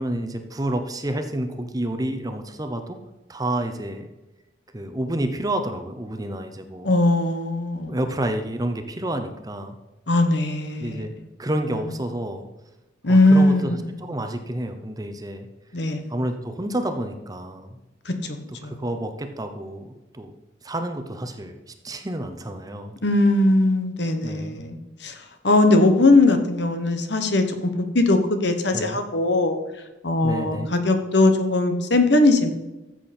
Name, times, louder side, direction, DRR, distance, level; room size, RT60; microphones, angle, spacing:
voice 1, 0.0-3.0 3.3-4.1 4.7-6.9 7.9-9.8 10.8-11.1 11.4-12.5 13.1-15.5 16.1-17.8 18.5-20.4 20.6-22.9 24.2-24.6 28.7-29.0 30.2-30.7, right 1 dB, 20° right, 7 dB, 0.8 m, -29 dB
voice 2, 6.8-8.0 10.1-11.0 13.0-13.8 15.7-16.0 18.0-18.1 18.6-18.8 23.0-25.2 25.4-29.6 30.0-32.5, left 2 dB, 60° left, 7 dB, 1.3 m, -20 dB
14.0 x 7.6 x 4.4 m, 1.0 s
head